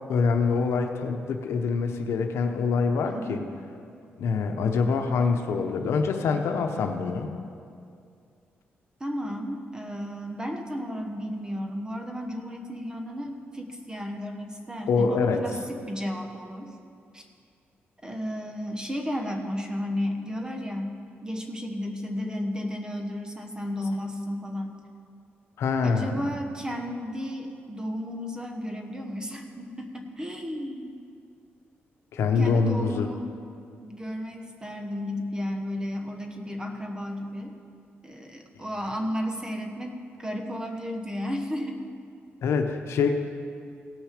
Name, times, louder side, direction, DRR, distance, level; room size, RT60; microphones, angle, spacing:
voice 1, 0.1-3.4 4.2-7.3 14.9-15.5 23.7-23.9 25.6-26.3 32.1-33.1 42.4-43.2, left 5 dB, 85° left, 5 dB, 0.8 m, -25 dB
voice 2, 3.0-3.5 9.0-16.7 17.1-17.2 18.0-24.8 25.8-30.9 32.3-33.2 33.8-37.5 38.0-41.8, equal, 15° right, 4 dB, 1.1 m, -33 dB
16.5 x 6.3 x 5.0 m, 2.4 s
cardioid pair, 105°, 4 cm